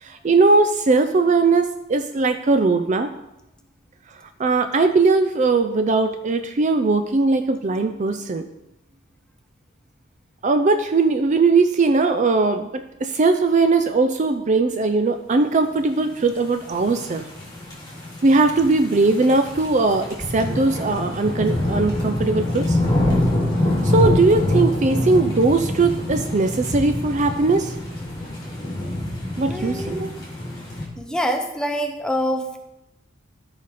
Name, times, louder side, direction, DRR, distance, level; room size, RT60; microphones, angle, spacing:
voice 1, 0.0-3.1 4.4-8.4 10.4-17.2 18.2-22.8 23.8-27.7 29.4-30.2, right 3 dB, 35° right, 8 dB, 0.4 m, -19 dB
sound 1, 16.5-30.8, left 1 dB, 20° left, 2.4 m, -25 dB
voice 2, 29.5-30.1 31.0-32.6, equal, 5° left, 4 dB, 0.8 m, -25 dB
13.5 x 5.0 x 4.2 m, 0.90 s
head